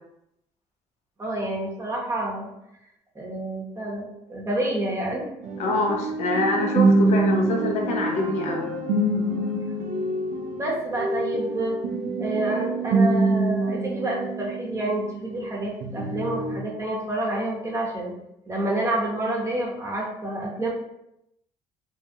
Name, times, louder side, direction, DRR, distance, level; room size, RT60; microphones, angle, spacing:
voice 1, 1.2-2.5 3.1-5.3 9.1-9.4 10.6-11.8 12.2-18.1 18.5-20.7, right 1 dB, 25° right, -2 dB, 0.8 m, -28 dB
sound 1, 5.4-15.5 15.8-16.6, right 2 dB, 75° right, 0.5 m, -25 dB
voice 2, 5.6-8.7, left 2 dB, 65° left, 1 dB, 0.6 m, -25 dB
2.8 x 2.3 x 2.7 m, 0.82 s
cardioid pair, 100°, 13 cm